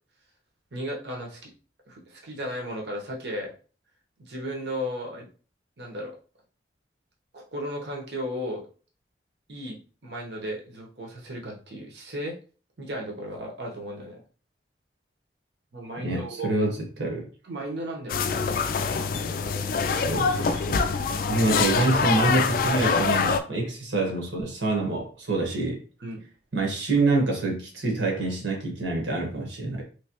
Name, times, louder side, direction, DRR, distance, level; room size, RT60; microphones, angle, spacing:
voice 1, 0.7-1.5 1.9-3.5 4.2-5.3 5.8-6.2 7.3-8.6 9.5-12.4 12.8-14.2 15.7-16.5 17.4-18.6 26.0-26.2, equal, 70° right, 0 dB, 1.0 m, -35 dB
voice 2, 16.0-17.3 20.0-20.9 21.3-25.8 26.5-29.8, right 2 dB, 85° right, 0 dB, 1.4 m, -26 dB
sound 1, 18.1-23.4, left 5 dB, 50° left, 0.3 m, -25 dB
3.2 x 3.1 x 2.9 m, 0.38 s
head